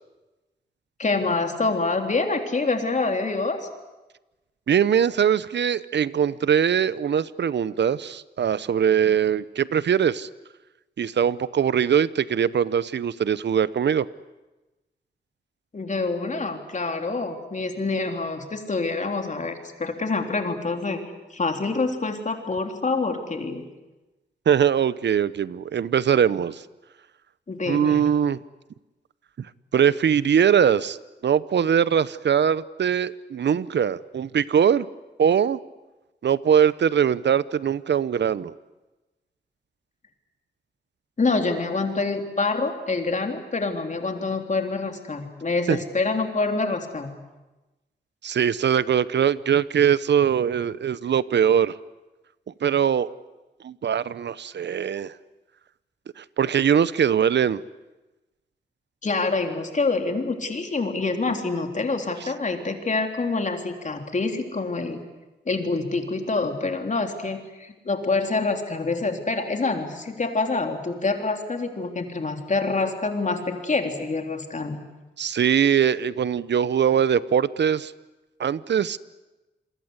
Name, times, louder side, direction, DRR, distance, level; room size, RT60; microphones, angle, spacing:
voice 1, 1.0-3.6 15.7-21.0 21.3-23.7 27.5-28.0 41.2-47.1 59.0-65.0 65.5-74.8, left 3 dB, 40° left, 4 dB, 3.7 m, -26 dB
voice 2, 4.7-10.3 11.0-14.1 24.5-26.6 27.7-28.4 29.4-29.5 29.7-31.0 31.2-34.9 35.2-35.6 36.2-38.5 45.7-45.8 48.2-51.8 52.6-53.1 53.6-55.1 56.2-57.6 75.2-77.9 78.4-79.0, right 8 dB, 75° right, 17 dB, 0.8 m, -21 dB
27.5 x 22.5 x 8.2 m, 1.1 s
wide cardioid pair, 85°, 18 cm